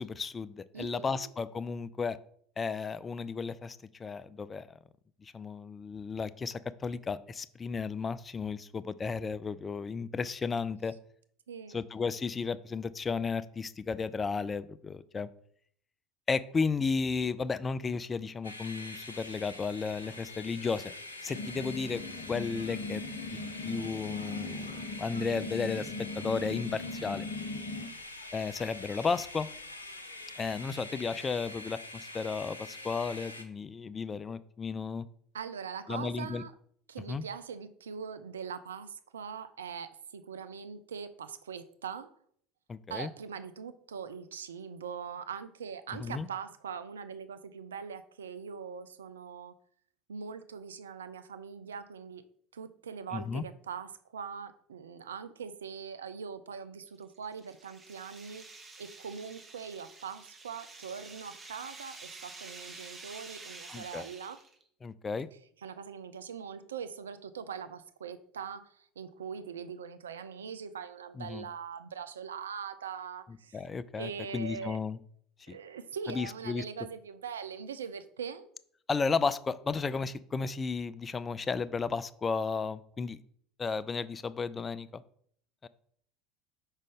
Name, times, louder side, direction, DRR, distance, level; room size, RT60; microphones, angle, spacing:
voice 1, 0.0-2.2 2.6-4.7 5.2-10.9 11.7-15.3 16.3-20.9 21.2-22.0 22.3-27.3 28.3-29.5 30.4-35.1 35.9-36.4 37.1-37.2 42.7-43.1 46.0-46.3 53.1-53.4 63.7-64.1 64.8-65.3 71.2-71.5 73.5-75.0 75.5-75.6 76.1-76.6 78.9-83.2 83.6-85.0 85.6-85.7, left 5 dB, 25° left, 16 dB, 0.3 m, -34 dB
voice 2, 0.7-1.3 11.5-11.8 35.3-36.5 36.9-42.1 42.9-49.5 50.1-52.2 52.5-58.4 58.8-64.4 65.6-73.6 73.9-74.8 75.5-78.5, right 6 dB, 75° right, 12 dB, 0.3 m, -42 dB
sound 1, 18.4-33.4, left 2 dB, 85° left, 0.6 m, -45 dB
sound 2, 21.3-27.8, left 3 dB, 50° left, 1.0 m, -39 dB
sound 3, 56.9-64.6, right 3 dB, 25° right, 1.1 m, -49 dB
5.4 x 5.1 x 3.5 m, 0.63 s
figure-of-eight pair, 70°, 0 cm